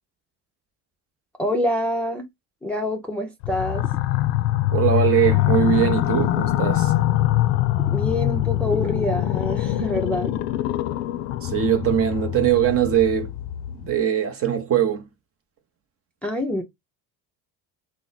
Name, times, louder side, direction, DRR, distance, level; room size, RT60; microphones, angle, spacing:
voice 1, 1.4-2.3 2.6-3.9 7.9-10.3 16.2-16.6, left 1 dB, 5° left, 0.5 m, -26 dB
sound 1, 3.4-13.9, left 14 dB, 75° left, 0.5 m, -23 dB
voice 2, 4.7-6.9 11.4-13.3 13.8-15.1, right 9 dB, 35° right, 0.7 m, -21 dB
3.0 x 2.1 x 3.9 m
supercardioid pair, 115°, 41 cm